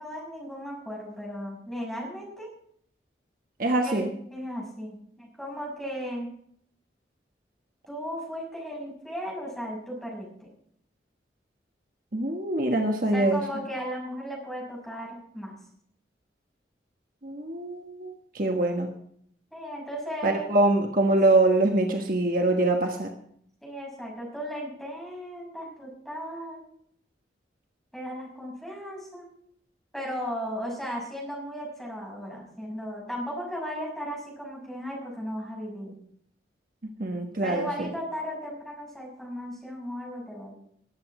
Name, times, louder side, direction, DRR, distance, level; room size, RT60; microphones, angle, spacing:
voice 1, 0.0-2.5 3.8-6.3 7.9-10.5 13.1-15.5 19.5-20.5 23.6-26.6 27.9-29.3 29.9-35.9 37.4-40.5, equal, ahead, -3 dB, 6.3 m, -36 dB
voice 2, 3.6-4.1 12.1-13.4 17.2-18.9 20.2-23.1 37.0-37.9, right 2 dB, 50° right, 3 dB, 1.4 m, -24 dB
20.0 x 8.7 x 4.9 m, 0.66 s
head